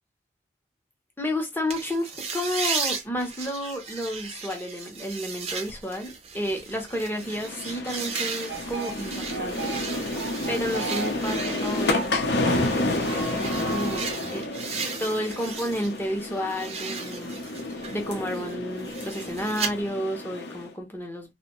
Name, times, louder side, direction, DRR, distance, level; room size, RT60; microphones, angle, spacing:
voice 1, 1.2-10.2 10.5-14.5 15.0-17.4 17.9-21.3, equal, 10° left, 0.6 m, -31 dB
sound 1, 1.7-15.9 16.2-19.7, right 5 dB, 35° right, 0.5 m, -36 dB
sound 2, 7.2-20.7, left 2 dB, 60° left, 0.6 m, -30 dB
sound 3, 8.5-14.1, right 4 dB, 80° right, 0.6 m, -37 dB
2.5 x 2.1 x 2.9 m
head